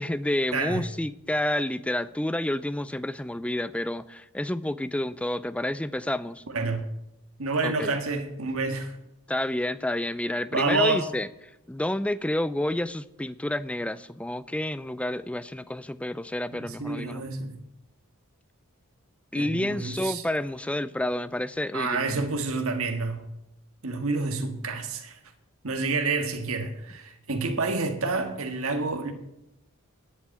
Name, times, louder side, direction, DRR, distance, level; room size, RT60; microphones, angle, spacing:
voice 1, 0.0-6.4 7.6-7.9 9.3-11.3 11.7-17.3 19.3-22.2, left 1 dB, 5° left, 0.4 m, -29 dB
voice 2, 0.5-0.8 6.5-6.9 7.4-9.0 10.5-11.1 16.5-17.5 19.3-20.2 21.7-23.2 23.8-25.2 25.6-29.1, right 3 dB, 65° right, 1.7 m, -28 dB
10.5 x 8.4 x 8.3 m
head